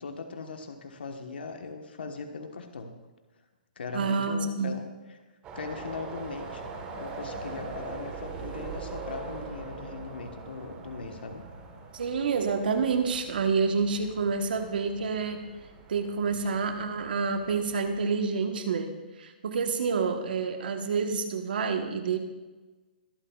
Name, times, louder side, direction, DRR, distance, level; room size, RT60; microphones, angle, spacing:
voice 1, 0.0-2.9 3.8-4.8 5.1-5.2 5.5-6.6 6.9-11.4 16.3-16.4, left 4 dB, 80° left, 4 dB, 1.3 m, -39 dB
voice 2, 3.9-4.7 11.9-15.4 15.9-18.9 19.2-22.2, right 5 dB, 65° right, 6 dB, 1.2 m, -28 dB
sound 1, 5.4-18.2, right 4 dB, 20° right, 1.4 m, -42 dB
23.0 x 9.0 x 2.4 m, 1.2 s
hypercardioid pair, 160°, 5 cm